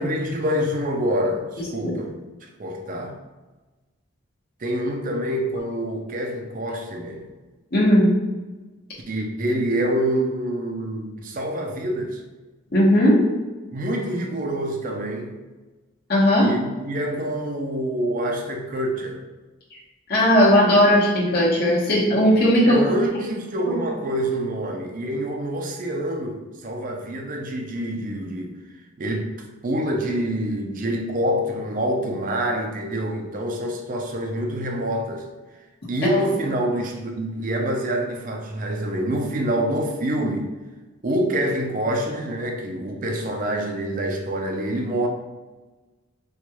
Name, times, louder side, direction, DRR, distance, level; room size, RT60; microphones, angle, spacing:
voice 1, 0.0-2.1 2.4-3.2 4.6-7.3 9.1-12.2 13.7-15.3 16.4-19.2 22.6-28.6 29.0-29.3 29.6-35.3 35.9-40.5 41.0-45.1, right 1 dB, 40° right, 3 dB, 0.5 m, -26 dB
voice 2, 7.7-8.1 12.7-13.2 16.1-16.5 20.1-22.8 36.0-36.2, equal, 50° left, -8 dB, 1.0 m, -17 dB
4.5 x 2.3 x 2.9 m, 1.2 s
head